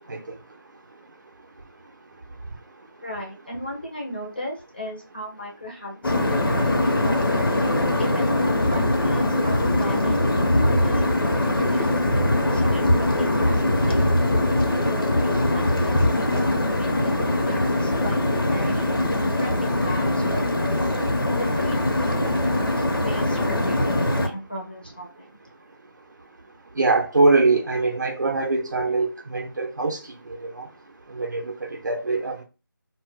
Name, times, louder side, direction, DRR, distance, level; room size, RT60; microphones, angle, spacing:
voice 1, 3.0-7.5 8.0-11.1 11.5-14.0 14.8-18.9 19.4-20.8 21.4-21.8 22.0-25.3, equal, 25° left, 0.4 m, -36 dB
sound 1, 6.0-24.3, left 1 dB, 90° left, 0.7 m, -22 dB
voice 2, 26.8-30.0 30.4-30.7 31.2-32.4, right 3 dB, 55° right, 0.5 m, -23 dB
2.1 x 2.1 x 3.4 m
figure-of-eight pair, 175°, 12 cm